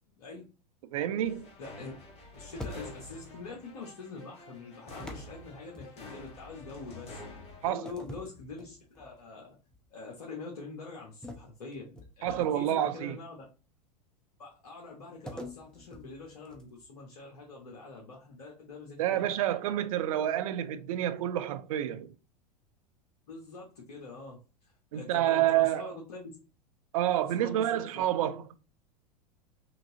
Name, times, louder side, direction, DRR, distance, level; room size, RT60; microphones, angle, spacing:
voice 1, 0.1-0.5 1.6-1.9 2.3-7.2 7.6-9.6 9.9-13.4 14.4-19.3 23.3-24.4 24.9-26.4 27.1-27.9, left 3 dB, 60° left, 1.1 m, -44 dB
voice 2, 0.9-1.5 7.6-7.8 12.2-13.2 19.0-22.1 24.9-25.9 26.9-28.4, right 12 dB, 55° right, 0.5 m, -28 dB
sound 1, 1.2-7.7, left 3 dB, 30° left, 1.4 m, -48 dB
sound 2, 2.6-3.2 5.0-6.3 7.8-9.2 9.7-9.9 11.2-12.7 15.3-16.9, left 1 dB, 5° left, 0.7 m, -45 dB
5.8 x 2.6 x 2.7 m
figure-of-eight pair, 90°, 21 cm